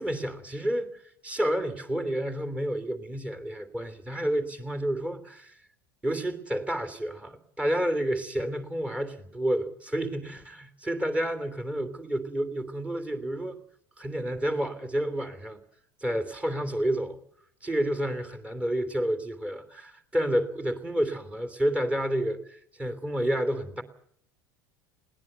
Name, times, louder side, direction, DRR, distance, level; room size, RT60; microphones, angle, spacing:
voice 1, 0.0-5.6 6.0-13.6 14.0-15.6 16.0-17.2 17.6-23.8, right 1 dB, 10° right, 9 dB, 3.1 m, -30 dB
20.5 x 18.0 x 8.1 m, 0.68 s
figure-of-eight pair, 70°, 10 cm